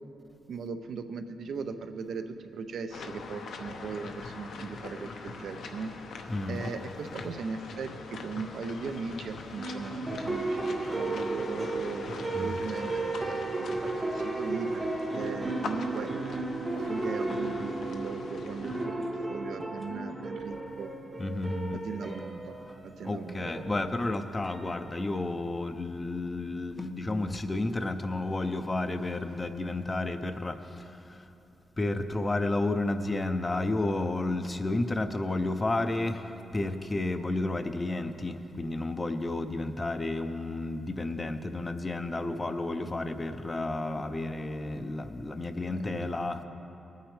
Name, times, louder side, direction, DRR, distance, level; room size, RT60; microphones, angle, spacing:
voice 1, 0.5-5.9 6.5-14.9 15.1-16.4 16.9-20.9 21.7-22.6 22.8-23.6 45.7-46.1, right 5 dB, 70° right, 8 dB, 0.6 m, -39 dB
sound 1, 2.9-18.9, left 4 dB, 80° left, 0.8 m, -43 dB
voice 2, 6.3-6.6 12.3-12.7 21.2-21.8 23.0-31.3 31.8-46.4, left 2 dB, 20° left, 9 dB, 0.5 m, -31 dB
sound 2, 9.6-25.2, right 2 dB, 15° right, 0.8 m, -34 dB
20.5 x 9.1 x 3.3 m, 2.9 s
wide cardioid pair, 170°, 0 cm